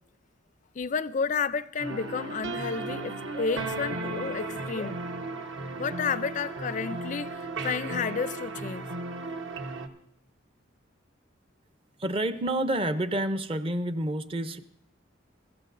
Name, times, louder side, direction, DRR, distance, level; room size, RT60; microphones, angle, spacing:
voice 1, 0.8-5.0 5.8-8.9, left 5 dB, 40° left, 0.4 m, -31 dB
sound 1, 1.8-9.9, right 3 dB, 65° right, 1.0 m, -35 dB
voice 2, 12.0-14.6, right 1 dB, 25° right, 0.6 m, -28 dB
22.5 x 14.0 x 2.6 m
head